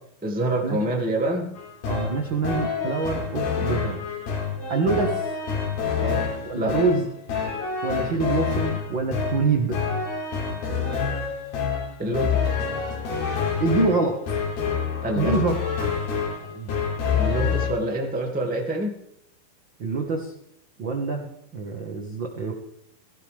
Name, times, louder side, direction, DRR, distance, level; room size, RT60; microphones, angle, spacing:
voice 1, 0.2-1.5 6.0-6.3 6.5-6.7 12.0-12.4 15.0-15.4 17.1-18.9, right 1 dB, 10° right, 0 dB, 0.5 m, -26 dB
sound 1, 1.6-17.7, left 6 dB, 75° left, 4.7 m, -27 dB
voice 2, 1.9-4.0 4.7-5.3 6.5-7.0 7.8-9.8 13.6-14.2 15.1-15.5 16.4-16.7 17.3-17.6 19.8-20.3 20.8-21.3 21.5-22.5, right 4 dB, 65° right, 2 dB, 1.1 m, -25 dB
17.0 x 16.5 x 3.5 m, 0.74 s
omnidirectional pair, 4.5 m